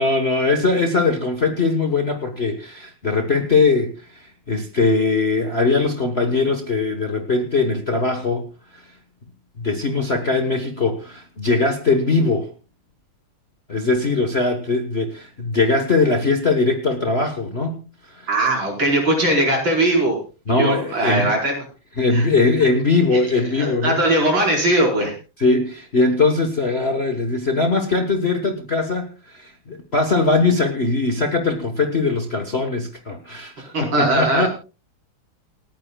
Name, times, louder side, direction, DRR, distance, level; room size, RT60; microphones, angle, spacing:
voice 1, 0.0-8.5 8.7-8.8 9.6-12.5 13.7-17.8 18.1-18.3 20.5-21.3 22.0-24.0 25.4-34.5, left 3 dB, 35° left, 5 dB, 1.4 m, -20 dB
voice 2, 18.3-20.2 20.5-21.6 22.1-22.2 23.1-23.3 23.6-25.2 33.7-34.5, right 1 dB, 65° right, 0 dB, 5.5 m, -20 dB
28.5 x 9.7 x 2.3 m, 0.32 s
omnidirectional pair, 2.3 m